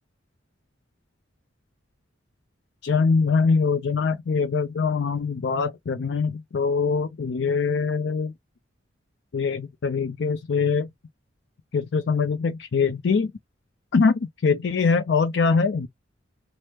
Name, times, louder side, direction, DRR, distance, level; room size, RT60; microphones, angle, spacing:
voice 1, 2.8-8.3 9.3-10.9 11.7-13.3 13.9-15.9, left 5 dB, 65° left, 0.4 m, -23 dB
3.3 x 2.0 x 2.8 m
head